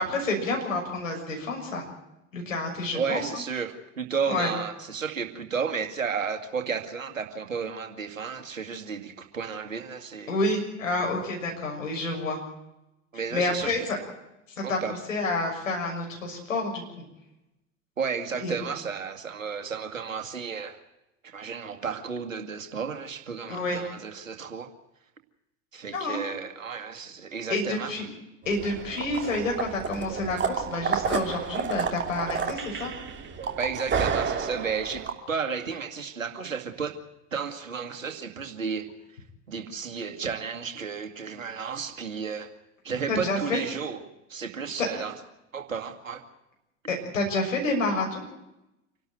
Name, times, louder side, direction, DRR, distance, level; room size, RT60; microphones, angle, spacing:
voice 1, 0.0-1.8 2.3-3.2 4.3-4.5 10.3-12.4 13.3-14.0 14.6-14.8 15.1-16.8 18.4-18.5 23.5-23.8 25.9-26.2 27.5-28.1 28.4-32.9 43.1-43.6 44.8-44.9 46.9-48.2, left 2 dB, 80° left, 2 dB, 6.5 m, -29 dB
voice 2, 2.9-10.3 13.1-13.9 14.6-15.0 18.0-20.8 21.2-24.7 25.7-27.9 33.6-37.0 37.3-38.9 39.5-42.5 42.8-44.0 44.3-45.2 45.5-46.2, right 6 dB, 85° right, 6 dB, 2.4 m, -33 dB
sound 1, 28.4-35.1, right 6 dB, 30° right, 3.2 m, -30 dB
27.0 x 12.5 x 9.2 m, 0.93 s
figure-of-eight pair, 80°, 39 cm